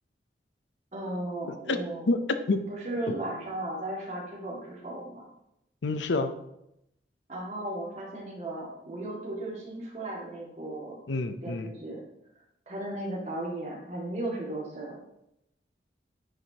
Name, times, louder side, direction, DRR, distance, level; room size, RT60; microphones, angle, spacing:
voice 1, 0.9-2.1 2.7-5.3 7.3-11.0 11.4-12.0 12.7-15.0, right 1 dB, 40° right, -4 dB, 2.1 m, -36 dB
voice 2, 2.1-2.6 3.1-3.2 5.8-6.4 11.1-11.7, left 3 dB, 80° left, 9 dB, 0.6 m, -28 dB
9.5 x 4.6 x 2.9 m, 0.82 s
head